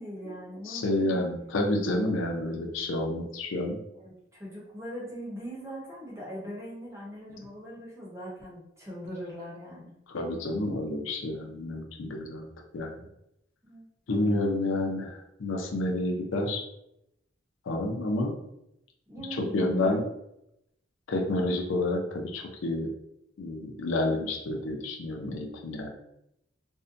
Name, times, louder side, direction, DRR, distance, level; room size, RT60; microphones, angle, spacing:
voice 1, 0.0-1.3 3.9-9.9 13.6-14.4 19.1-20.1, equal, 15° right, -5 dB, 0.8 m, -41 dB
voice 2, 0.6-3.8 10.1-12.5 12.7-13.1 14.1-16.6 17.7-18.4 19.2-20.0 21.1-22.9 23.4-25.9, left 2 dB, 80° left, 2 dB, 0.5 m, -29 dB
2.6 x 2.1 x 2.5 m, 0.82 s
head